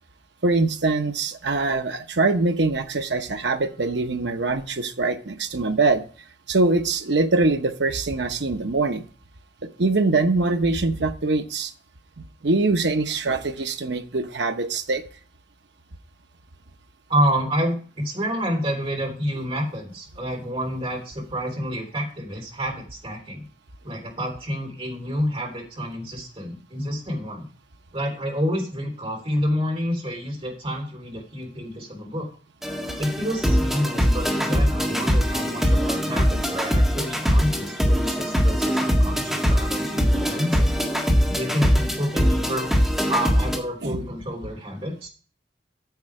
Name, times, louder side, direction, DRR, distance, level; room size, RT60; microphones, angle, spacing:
voice 1, 0.4-6.0 6.5-9.0 9.8-11.7 12.2-15.0 43.8-44.0, right 3 dB, 75° right, 8 dB, 0.9 m, -23 dB
voice 2, 17.1-23.5 23.8-27.5 27.9-32.3 33.0-40.7 41.3-42.7 43.1-45.1, equal, 30° right, 0 dB, 3.7 m, -28 dB
sound 1, 32.6-43.6, equal, ahead, 1.8 m, -22 dB
9.5 x 7.7 x 4.8 m, 0.41 s
head